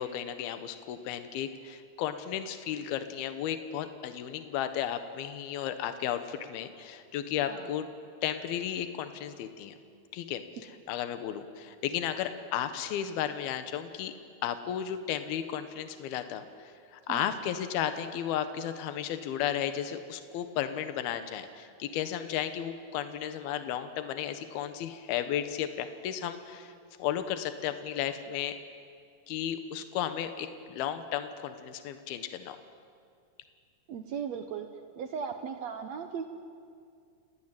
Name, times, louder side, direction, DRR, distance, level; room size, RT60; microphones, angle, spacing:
voice 1, 0.0-7.9 8.2-9.7 10.1-14.1 14.4-26.7 27.0-28.6 29.3-32.6, left 10 dB, 75° left, 9 dB, 3.1 m, -34 dB
voice 2, 33.9-34.7 35.0-36.3, right 7 dB, 85° right, 7 dB, 1.5 m, -37 dB
29.5 x 18.5 x 9.1 m, 2.3 s
omnidirectional pair, 4.6 m